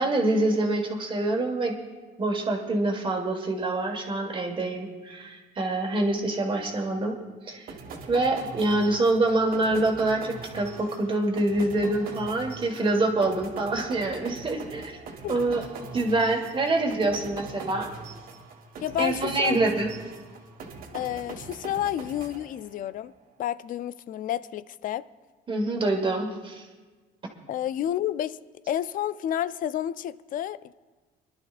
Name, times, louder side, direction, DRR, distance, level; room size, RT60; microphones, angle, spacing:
voice 1, 0.0-1.7 2.2-7.2 7.5-7.7 8.1-15.0 15.3-15.6 15.9-17.9 19.0-19.9 25.5-26.7, right 2 dB, 30° right, 1.7 m, -26 dB
sound 1, 7.7-23.0, right 4 dB, 60° right, 1.8 m, -42 dB
voice 2, 18.8-19.6 20.9-23.1 23.4-25.1 27.5-28.4 28.7-30.7, left 11 dB, 55° left, 0.4 m, -30 dB
25.5 x 11.5 x 2.5 m
cardioid pair, 110°, 17 cm